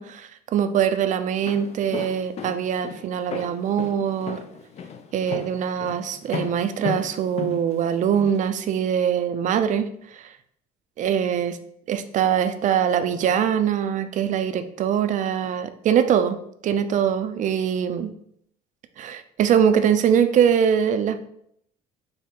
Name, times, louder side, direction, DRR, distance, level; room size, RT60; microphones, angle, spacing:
voice 1, 0.0-4.4 5.1-10.2 11.0-11.6 11.9-16.4 16.6-18.1 19.0-21.2, right 8 dB, 50° right, 10 dB, 0.4 m, -23 dB
Walk footsteps, 1.3-8.4, left 6 dB, 40° left, 0.4 m, -35 dB
4.2 x 2.1 x 3.6 m, 0.71 s
cardioid pair, 110°, 17 cm